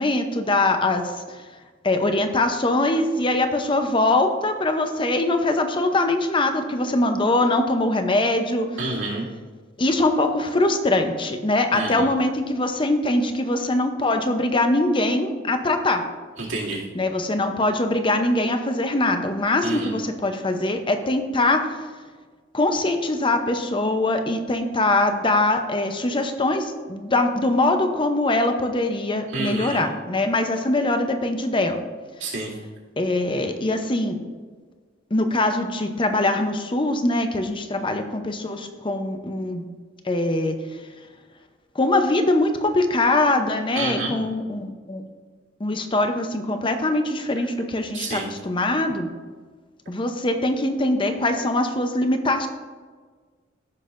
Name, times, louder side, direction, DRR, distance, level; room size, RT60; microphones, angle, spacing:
voice 1, 0.0-8.9 9.8-16.1 16.9-22.0 22.5-31.9 32.2-32.4 33.0-34.2 35.1-39.7 40.0-41.1 41.7-45.1 45.6-49.2 49.9-52.5, left 2 dB, 25° left, 6 dB, 0.7 m, -22 dB
voice 2, 8.8-9.3 11.7-12.1 16.4-16.8 19.6-19.9 29.3-29.8 32.2-32.5 43.8-44.1 47.9-48.3, right 3 dB, 80° right, -6 dB, 2.5 m, -28 dB
15.0 x 6.2 x 2.6 m, 1.5 s
head